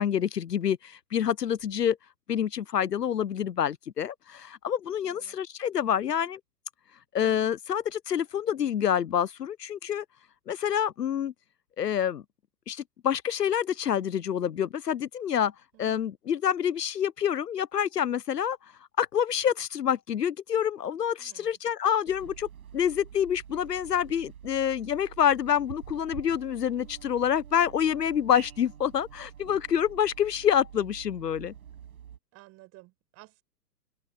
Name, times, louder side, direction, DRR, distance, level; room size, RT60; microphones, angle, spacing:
voice 1, 0.0-2.0 2.3-6.4 7.1-10.0 10.5-11.3 11.8-12.2 12.7-15.5 15.8-18.6 19.0-31.5, left 9 dB, 70° left, 0.8 m, -27 dB
voice 2, 5.0-5.4 15.7-16.0 21.2-21.6 32.3-33.4, right 20 dB, 30° right, 6.5 m, -54 dB
sound 1, 22.1-32.2, right 9 dB, 55° right, 6.5 m, -47 dB
open air
figure-of-eight pair, 110°, 50 cm